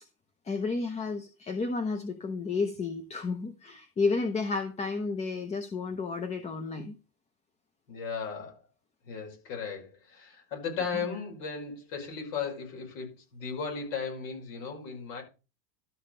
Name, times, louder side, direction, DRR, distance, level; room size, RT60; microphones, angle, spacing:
voice 1, 0.4-6.9, left 4 dB, 15° left, 0.6 m, -31 dB
voice 2, 7.9-8.6 9.1-15.2, left 5 dB, 60° left, 5.7 m, -36 dB
12.5 x 5.0 x 5.4 m
supercardioid pair, 140°, 46 cm